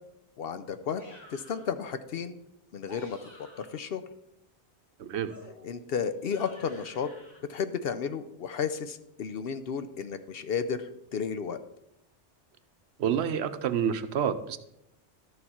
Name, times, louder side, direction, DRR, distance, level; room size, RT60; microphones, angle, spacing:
voice 1, 0.4-1.0 1.3-2.4 2.7-4.0 5.6-7.1 7.5-11.6, left 6 dB, 65° left, 11 dB, 0.8 m, -33 dB
sound 1, 0.9-1.7 2.7-3.9 5.3-7.4, left 1 dB, 15° left, 4.0 m, -52 dB
voice 2, 5.0-5.3 13.0-14.6, right 8 dB, 70° right, 11 dB, 0.9 m, -28 dB
12.5 x 6.7 x 4.3 m, 0.82 s
omnidirectional pair, 1.2 m